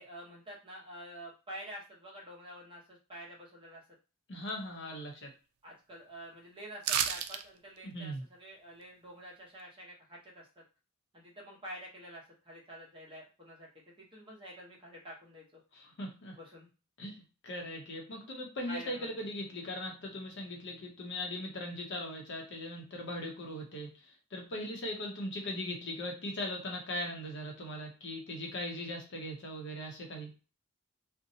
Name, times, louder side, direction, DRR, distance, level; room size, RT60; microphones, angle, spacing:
voice 1, 0.0-3.8 5.6-10.6 11.1-15.6 16.3-16.7 18.7-19.2, equal, 25° right, -3 dB, 1.0 m, -48 dB
voice 2, 4.3-5.3 7.8-8.2 15.7-16.4 17.0-30.3, left 1 dB, 60° left, 1 dB, 0.7 m, -39 dB
sound 1, 6.8-7.4 7.8-7.9, right 9 dB, 85° right, 0.3 m, -30 dB
2.6 x 2.1 x 2.7 m, 0.33 s
head